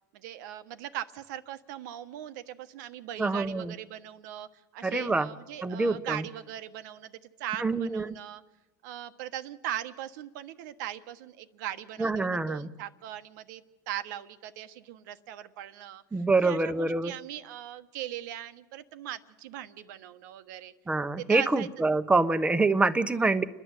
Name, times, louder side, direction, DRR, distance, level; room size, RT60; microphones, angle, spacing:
voice 1, 0.1-4.5 4.7-8.4 8.8-20.7 21.2-21.7 23.1-23.3, right 12 dB, 80° right, 11 dB, 1.2 m, -40 dB
voice 2, 3.2-3.7 4.8-5.3 5.6-6.2 7.6-8.1 12.0-12.7 16.1-17.1 20.9-23.4, right 3 dB, 10° right, 12 dB, 1.0 m, -26 dB
29.5 x 11.0 x 8.2 m, 1.0 s
supercardioid pair, 110°, 10 cm